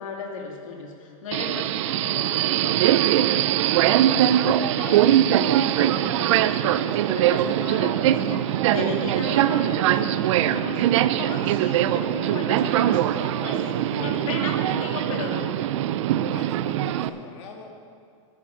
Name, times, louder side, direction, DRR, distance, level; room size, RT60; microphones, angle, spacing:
voice 1, 0.0-5.1 5.3-13.0 13.4-13.6 14.0-15.5, left 4 dB, 75° left, 0 dB, 2.3 m, -35 dB
Subway metro underground, 1.3-17.1, right 12 dB, 65° right, 0.5 m, -22 dB
voice 2, 13.1-14.4 14.7-14.9 16.2-17.8, left 5 dB, 60° left, 2 dB, 1.9 m, -40 dB
10.5 x 9.9 x 5.8 m, 2.2 s
supercardioid pair, 140°, 17 cm